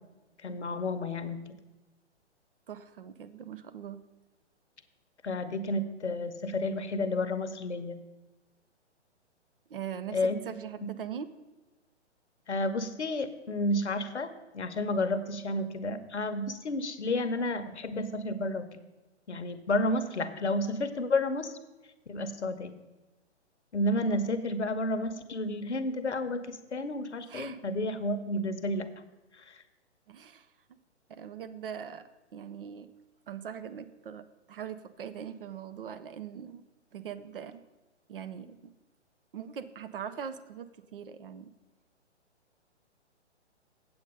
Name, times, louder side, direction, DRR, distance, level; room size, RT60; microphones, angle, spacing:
voice 1, 0.4-1.6 5.2-8.0 10.1-10.4 10.8-10.9 12.5-18.7 19.3-21.5 22.1-22.7 23.7-28.9 29.4-29.6, left 1 dB, 70° left, 11 dB, 0.9 m, -31 dB
voice 2, 2.7-4.0 9.7-10.2 10.5-11.3 27.3-27.6 30.1-30.5 31.1-32.9 33.3-36.6 36.9-37.6 38.1-38.6 39.3-40.7 40.9-41.5, right 8 dB, 50° right, 11 dB, 0.7 m, -41 dB
7.9 x 7.9 x 5.3 m, 1.1 s
figure-of-eight pair, 125°, 35 cm